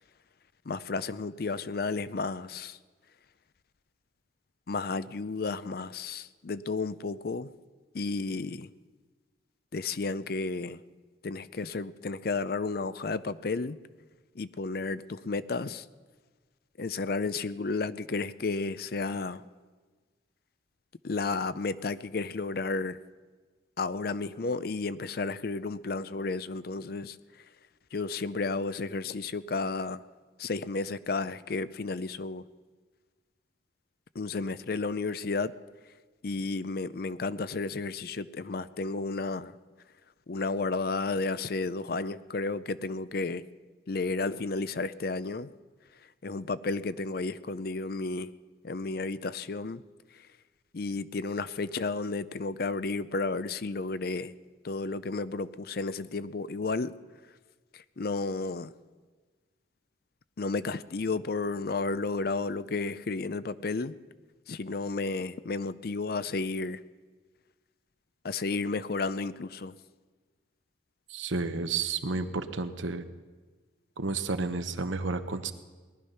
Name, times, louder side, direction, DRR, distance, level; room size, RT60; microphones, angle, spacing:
voice 1, 0.7-2.8 4.7-7.5 7.9-8.7 9.7-10.8 11.2-13.8 14.4-15.9 16.8-19.4 21.0-23.0 23.8-27.2 27.9-30.0 30.4-32.4 34.1-35.5 36.2-39.5 40.3-43.5 43.9-45.5 46.2-48.3 48.6-49.8 50.1-50.3 50.7-54.3 54.6-57.0 57.7-58.7 60.4-63.9 64.5-66.8 68.2-69.7, left 3 dB, 50° left, 15 dB, 0.5 m, -32 dB
voice 2, 71.1-73.0 74.0-75.5, right 4 dB, 90° right, 9 dB, 1.0 m, -31 dB
19.5 x 12.0 x 5.6 m, 1.4 s
head